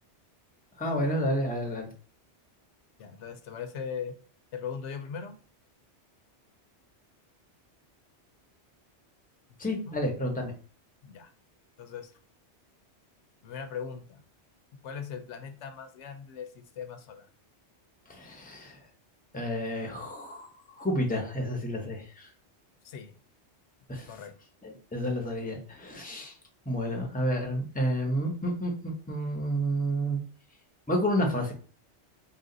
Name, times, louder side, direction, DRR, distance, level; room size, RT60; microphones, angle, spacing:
voice 1, 0.8-1.9 9.6-10.5 18.1-18.8 19.3-20.5 20.8-22.3 23.9-24.1 24.6-26.4 26.7-30.2 30.9-31.5, equal, 10° left, 1 dB, 0.8 m, -30 dB
voice 2, 3.0-4.1 4.5-5.4 9.9-10.0 11.0-11.3 11.8-12.1 13.4-14.2 14.8-17.3 22.8-23.2 24.1-24.3, left 6 dB, 90° left, 8 dB, 1.0 m, -39 dB
4.1 x 2.5 x 3.8 m, 0.39 s
omnidirectional pair, 1.2 m